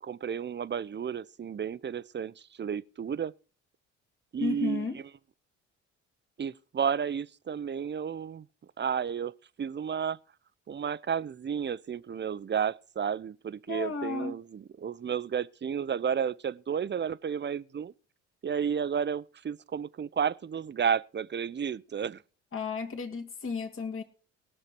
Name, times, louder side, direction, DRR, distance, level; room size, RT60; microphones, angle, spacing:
voice 1, 0.0-3.3 4.3-4.9 6.4-8.4 8.8-9.3 9.6-10.2 10.7-17.9 18.4-22.2, right 7 dB, 30° right, 0.7 m, -32 dB
voice 2, 4.4-5.0 13.7-14.4 22.5-24.0, left 4 dB, 40° left, 2.4 m, -33 dB
18.5 x 6.6 x 6.1 m
hypercardioid pair, 60°, 34 cm